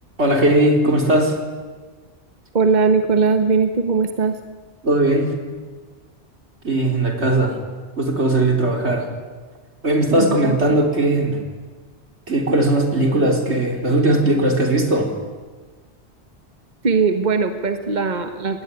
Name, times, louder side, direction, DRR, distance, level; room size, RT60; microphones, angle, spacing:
voice 1, 0.2-1.4 4.8-5.3 6.6-7.6 8.0-9.1 9.8-11.4 12.3-15.1, right 1 dB, 75° right, 3 dB, 4.1 m, -18 dB
voice 2, 2.5-4.4 10.2-10.6 16.8-18.6, right 4 dB, 40° right, 7 dB, 1.5 m, -19 dB
28.5 x 19.5 x 9.8 m, 1.4 s
omnidirectional pair, 1.2 m